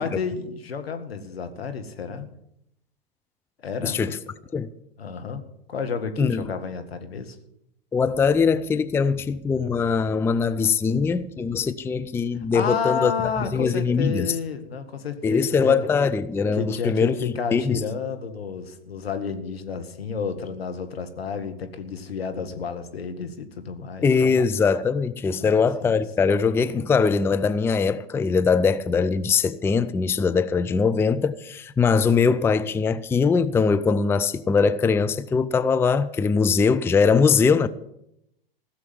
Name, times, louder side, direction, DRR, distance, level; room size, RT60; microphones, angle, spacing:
voice 1, 0.0-2.3 3.6-4.2 5.0-5.4 5.7-7.4 12.3-15.8 16.5-24.3 25.4-26.8, left 5 dB, 80° left, 1.9 m, -31 dB
voice 2, 3.8-4.2 4.5-4.7 6.2-6.5 7.9-13.1 13.5-14.3 15.2-17.8 24.0-37.7, left 5 dB, 10° left, 0.4 m, -21 dB
15.5 x 7.2 x 9.2 m
hypercardioid pair, 100°, 30 cm